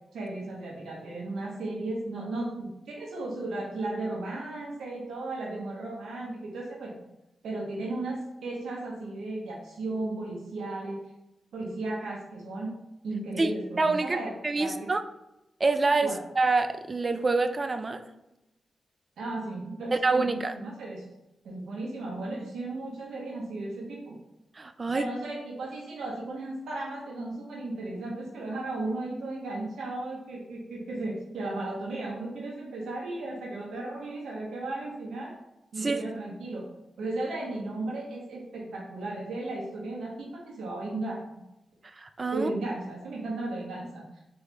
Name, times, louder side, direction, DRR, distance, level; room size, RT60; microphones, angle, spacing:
voice 1, 0.1-6.9 7.4-11.0 11.5-12.8 13.0-14.9 16.0-16.2 19.2-20.0 20.2-21.1 21.4-24.2 24.9-35.3 35.7-36.7 37.0-41.4 42.3-44.0, right 2 dB, 85° right, -2 dB, 0.7 m, -35 dB
voice 2, 13.8-14.2 14.4-15.0 15.6-18.0 20.0-20.6 24.6-25.1 35.8-36.0 42.0-42.5, right 3 dB, 35° right, 8 dB, 0.3 m, -26 dB
3.5 x 2.3 x 3.0 m, 0.91 s
cardioid pair, 70°, 0 cm